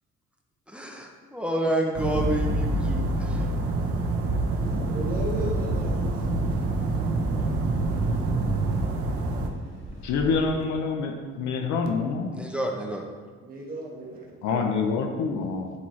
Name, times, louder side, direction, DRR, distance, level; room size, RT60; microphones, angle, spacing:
voice 1, 0.7-3.5 12.3-13.0, right 1 dB, 5° right, 0 dB, 0.6 m, -29 dB
sound 1, 1.9-9.5, right 2 dB, 50° right, 0.8 m, -26 dB
Thunder, 4.6-10.5, equal, 20° left, 2.0 m, -37 dB
voice 2, 4.9-6.2 13.4-14.2, right 1 dB, 30° right, -3 dB, 1.4 m, -34 dB
voice 3, 10.0-12.4 14.4-15.7, left 4 dB, 75° left, 3 dB, 0.8 m, -26 dB
11.0 x 4.4 x 3.2 m, 1.5 s
cardioid pair, 155°, 29 cm